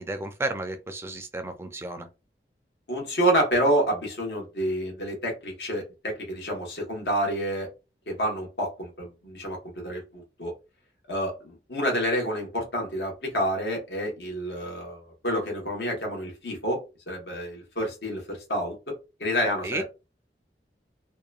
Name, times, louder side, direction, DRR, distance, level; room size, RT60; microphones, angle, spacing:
voice 1, 0.0-2.1 19.6-19.8, right 2 dB, 15° right, 0.4 m, -32 dB
voice 2, 2.9-7.7 8.1-10.5 11.1-18.9 19.2-19.8, equal, 75° left, 1.2 m, -28 dB
2.8 x 2.2 x 2.4 m
head